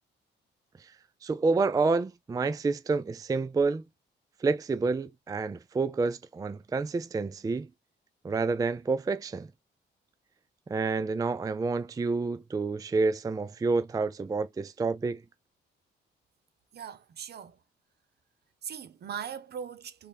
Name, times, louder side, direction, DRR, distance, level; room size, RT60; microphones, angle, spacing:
voice 1, 1.2-3.8 4.4-7.7 8.2-9.5 10.7-15.2, right 4 dB, 20° right, 0.4 m, -28 dB
voice 2, 16.7-17.6 18.6-20.1, right 8 dB, 55° right, 0.8 m, -40 dB
3.6 x 3.4 x 4.2 m
cardioid pair, 90°, 20 cm